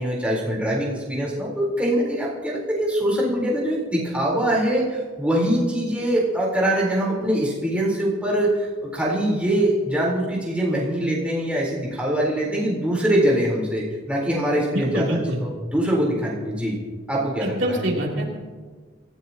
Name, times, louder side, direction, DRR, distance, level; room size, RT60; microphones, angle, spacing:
voice 1, 0.0-16.8 17.1-17.8, right 1 dB, 5° right, -4 dB, 3.9 m, -23 dB
voice 2, 14.7-15.4 17.4-18.4, right 1 dB, 70° right, -2 dB, 3.0 m, -25 dB
26.5 x 15.0 x 2.9 m, 1.5 s
head